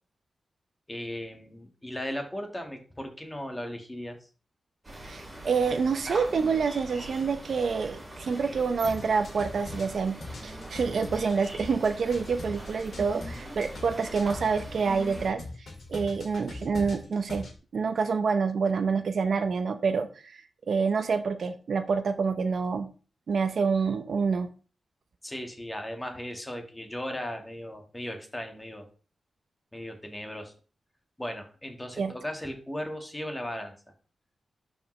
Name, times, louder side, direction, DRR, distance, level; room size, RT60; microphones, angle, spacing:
voice 1, 0.9-4.2 25.2-28.9 29.7-30.5 31.2-33.7, left 1 dB, 10° left, 4 dB, 1.5 m, -37 dB
sound 1, 4.8-15.3, right 1 dB, 20° right, 2.7 m, -42 dB
voice 2, 5.0-17.5 17.7-20.4 20.7-22.9 23.3-24.5 32.0-32.1, right 5 dB, 60° right, 9 dB, 0.6 m, -27 dB
sound 2, 8.8-14.7 15.1-17.6, left 2 dB, 65° left, 2.3 m, -41 dB
11.5 x 5.0 x 3.1 m, 0.37 s
wide cardioid pair, 150°, 0 cm